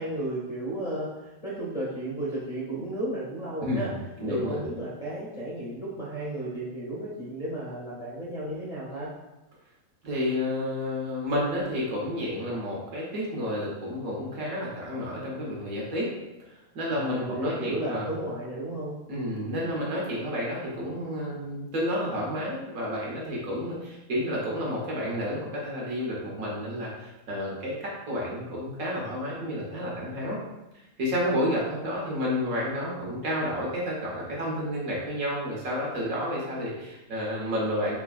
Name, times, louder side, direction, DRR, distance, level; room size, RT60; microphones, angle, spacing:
voice 1, 0.0-3.9 4.2-9.1 16.9-19.0, right 1 dB, 40° left, -8 dB, 0.5 m, -33 dB
voice 2, 3.6-4.6 10.0-16.1 16.7-18.1 19.1-30.4 31.0-38.0, left 1 dB, 75° right, -4 dB, 1.4 m, -30 dB
3.3 x 3.3 x 2.3 m, 0.99 s
omnidirectional pair, 1.5 m